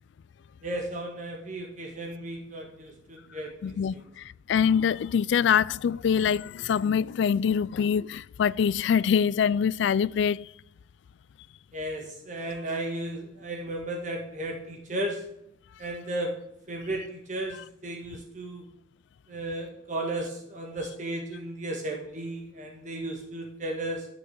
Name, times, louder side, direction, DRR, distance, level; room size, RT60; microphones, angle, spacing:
voice 1, 0.6-4.0 11.7-15.2 15.8-16.3 16.7-18.6 19.3-24.1, right 1 dB, 40° right, 1.5 m, -34 dB
voice 2, 3.6-10.5, left 7 dB, 65° left, 0.3 m, -24 dB
12.0 x 6.4 x 7.6 m
head